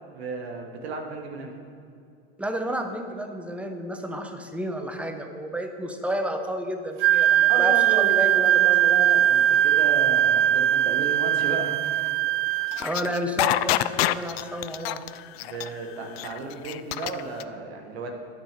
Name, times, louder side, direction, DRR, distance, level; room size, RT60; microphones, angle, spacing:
voice 1, 0.1-1.5 7.5-12.1 15.4-18.1, right 3 dB, 85° right, 2 dB, 1.4 m, -34 dB
voice 2, 2.4-8.9 12.5-15.0, right 1 dB, 5° right, 5 dB, 1.0 m, -31 dB
Wind instrument woodwind instrument, 7.0-12.8, right 11 dB, 40° right, 0.5 m, -20 dB
sound 1, 12.7-17.4, left 16 dB, 75° left, 0.5 m, -26 dB
9.9 x 6.3 x 6.7 m, 2.4 s
hypercardioid pair, 110°, 31 cm